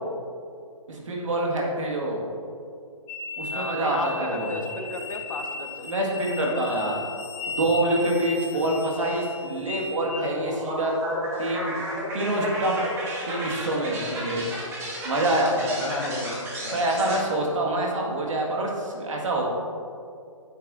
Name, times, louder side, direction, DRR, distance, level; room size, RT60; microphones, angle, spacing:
voice 1, 0.9-2.2 3.4-4.5 5.8-7.0 7.5-10.9 11.4-11.7 12.1-12.8 13.3-14.4 15.0-15.9 16.7-19.4, right 1 dB, 70° right, -1 dB, 1.9 m, -26 dB
sound 1, 3.1-10.3, left 3 dB, 20° left, 0.9 m, -36 dB
voice 2, 3.5-5.9 8.5-8.7 15.8-17.5, left 3 dB, 80° left, 5 dB, 1.0 m, -34 dB
sound 2, 10.2-17.2, equal, 15° right, 1.4 m, -33 dB
9.3 x 7.8 x 2.7 m, 2.4 s
hypercardioid pair, 150°, 17 cm